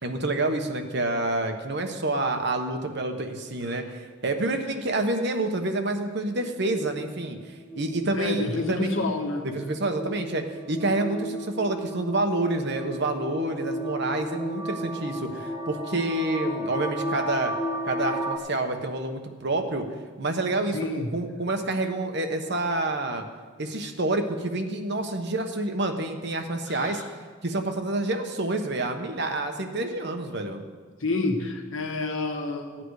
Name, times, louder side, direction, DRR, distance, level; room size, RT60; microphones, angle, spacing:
voice 1, 0.0-7.4 7.7-8.9 9.4-17.5 17.9-19.9 20.2-23.2 23.6-27.0 27.4-30.6, right 2 dB, 55° right, 5 dB, 1.2 m, -28 dB
sound 1, 6.4-18.4, right 1 dB, 15° right, 1.9 m, -34 dB
voice 2, 8.1-9.5 20.7-21.1 26.7-27.1 31.0-32.8, left 2 dB, 70° left, 3 dB, 1.6 m, -29 dB
16.0 x 8.9 x 4.9 m, 1.5 s
head